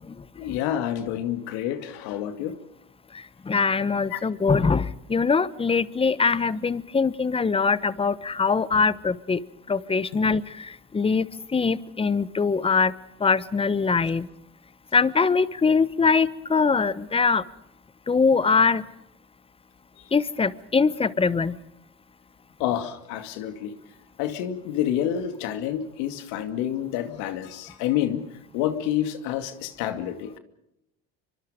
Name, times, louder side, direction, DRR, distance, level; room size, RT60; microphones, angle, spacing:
voice 1, 0.4-2.5 4.1-4.2 20.0-20.1 22.6-23.7 24.2-28.2 28.5-30.4, left 11 dB, 75° left, 8 dB, 2.4 m, -28 dB
voice 2, 3.5-9.4 9.7-10.4 10.9-11.3 11.5-12.9 13.2-14.2 14.9-17.4 18.1-18.8 20.1-21.5, left 5 dB, 20° left, 17 dB, 1.1 m, -22 dB
25.0 x 24.5 x 5.1 m, 0.85 s
supercardioid pair, 90°, 30 cm